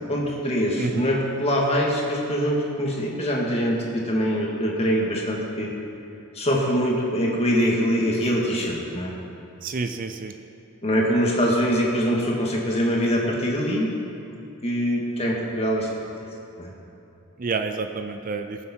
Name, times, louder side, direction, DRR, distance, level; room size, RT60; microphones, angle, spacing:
voice 1, 0.1-5.7 6.3-9.1 10.8-13.9 14.6-15.9 16.6-16.7, equal, 30° left, -3 dB, 2.1 m, -23 dB
voice 2, 9.6-10.3 17.4-18.6, right 4 dB, 40° right, 7 dB, 0.5 m, -29 dB
20.0 x 7.3 x 4.6 m, 2.8 s
head